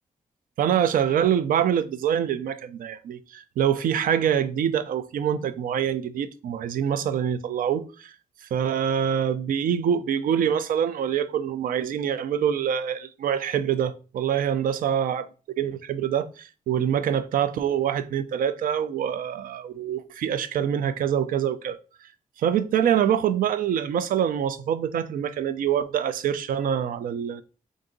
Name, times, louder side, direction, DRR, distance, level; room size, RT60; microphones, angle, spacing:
voice 1, 0.6-8.1 8.5-15.3 15.6-21.8 22.4-27.4, right 9 dB, 85° right, 0.4 m, -25 dB
3.8 x 2.6 x 3.8 m
wide cardioid pair, 120°, 14 cm